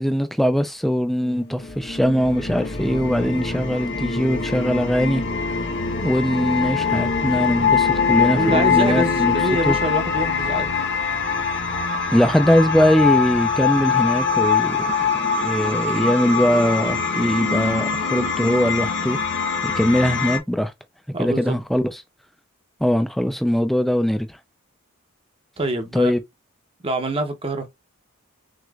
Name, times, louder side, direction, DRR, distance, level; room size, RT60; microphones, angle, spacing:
voice 1, 0.0-5.2 6.0-9.3 9.7-9.8 12.1-15.1 15.4-19.2 19.6-20.7 21.2-21.9 22.8-24.4 25.9-26.2, equal, ahead, 0.5 m, -21 dB
sound 1, 1.2-20.4, left 5 dB, 55° left, 1.1 m, -23 dB
voice 2, 8.4-10.7 21.1-21.5 25.6-26.1 26.8-27.7, right 2 dB, 25° right, 0.9 m, -25 dB
6.2 x 3.0 x 2.4 m
head